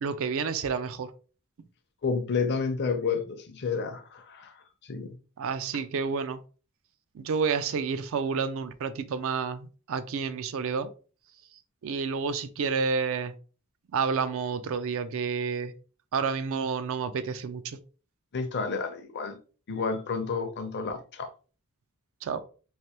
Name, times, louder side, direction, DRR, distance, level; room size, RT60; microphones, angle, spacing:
voice 1, 0.0-1.1 5.4-6.4 7.1-10.9 11.8-13.3 13.9-15.7 16.1-17.8 22.2-22.4, right 5 dB, 60° right, 0.4 m, -30 dB
voice 2, 2.0-5.1 18.3-19.4 19.7-21.3, left 5 dB, 50° left, 0.6 m, -30 dB
3.3 x 2.6 x 2.9 m
head